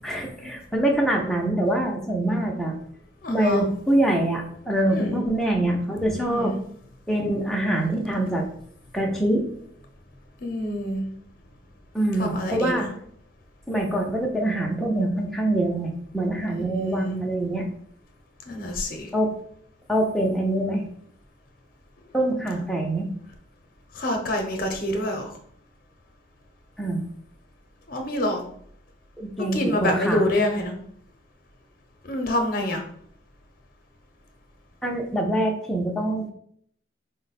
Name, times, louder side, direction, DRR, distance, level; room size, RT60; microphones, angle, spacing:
voice 1, 0.0-2.7 3.3-6.5 7.1-8.4 8.9-9.5 11.9-12.9 13.7-17.7 19.1-19.3 19.9-20.9 22.1-23.1 26.8-27.0 29.2-30.2 34.8-36.3, right 1 dB, ahead, -1 dB, 0.5 m, -24 dB
voice 2, 3.2-3.6 4.9-5.2 6.2-6.6 10.4-11.0 12.2-12.9 16.7-17.1 18.5-19.1 23.9-25.3 27.9-28.4 29.5-30.7 32.0-32.8, left 1 dB, 50° left, 4 dB, 0.7 m, -26 dB
4.3 x 2.1 x 4.0 m, 0.64 s
head